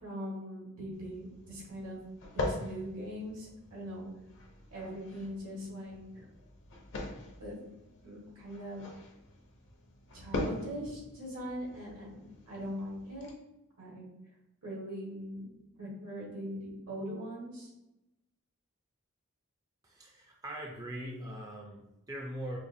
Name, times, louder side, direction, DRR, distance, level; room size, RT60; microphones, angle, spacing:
voice 1, 0.0-2.0 2.3-4.1 4.7-6.3 7.4-7.6 8.0-8.8 10.1-12.2 12.5-13.3 13.8-14.1 14.6-15.5 15.8-17.7, equal, 80° right, -4 dB, 1.4 m, -41 dB
sound 1, 0.9-13.3, left 2 dB, 60° left, 0.7 m, -42 dB
voice 2, 19.8-22.6, equal, 15° right, -1 dB, 0.4 m, -41 dB
4.7 x 2.1 x 2.6 m, 0.91 s
head